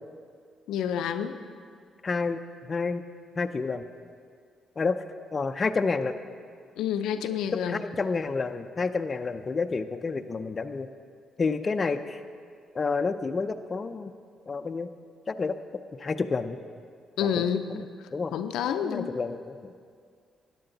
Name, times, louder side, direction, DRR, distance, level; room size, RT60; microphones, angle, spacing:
voice 1, 0.7-1.4 6.8-7.8 17.2-17.7 18.3-19.2, left 8 dB, 85° left, 8 dB, 0.5 m, -28 dB
voice 2, 2.0-2.4 2.7-3.0 3.4-3.9 4.8-5.0 5.3-6.1 7.7-10.9 11.4-12.2 12.7-14.1 14.5-14.9 15.3-15.6 16.0-16.6 17.2-17.4 17.7-17.9 18.1-18.3 18.8-19.8, left 4 dB, 35° left, 8 dB, 0.5 m, -29 dB
13.5 x 9.9 x 3.9 m, 2.2 s
cardioid pair, 90°, 0 cm